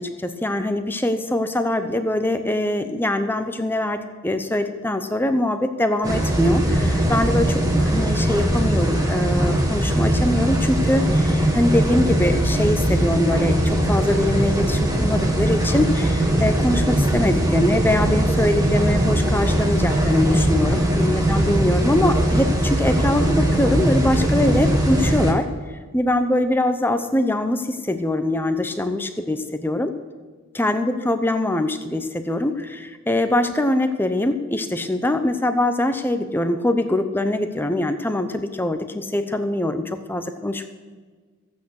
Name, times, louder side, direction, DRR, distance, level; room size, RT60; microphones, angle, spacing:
voice 1, 0.0-25.5 25.9-29.9 30.5-40.7, left 1 dB, 10° left, 8 dB, 0.7 m, -23 dB
sound 1, 6.0-25.3, right 1 dB, 15° right, 1.5 m, -20 dB
15.0 x 8.4 x 6.5 m, 1.4 s
head